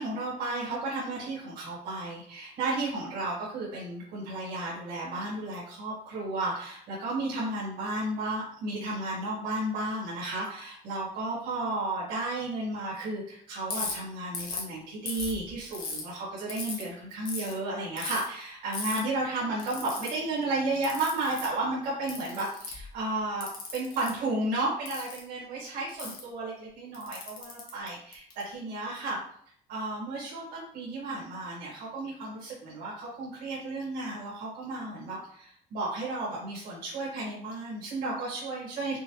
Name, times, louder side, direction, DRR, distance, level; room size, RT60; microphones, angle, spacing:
voice 1, 0.0-29.2 29.7-39.0, right 2 dB, 75° right, -9 dB, 1.7 m, -33 dB
Ratchet pawl, 13.7-13.9 14.3-14.7 15.1-16.0 16.5-16.8 17.2-17.5 18.0-18.2 18.7-19.0 19.6-20.1 20.8-21.5 22.1-22.9 23.4-24.1 24.8-25.2 26.0-26.2 26.9-28.4, left 4 dB, 55° left, 1.3 m, -36 dB
5.5 x 2.2 x 3.0 m, 0.62 s
cardioid pair, 110°, 17 cm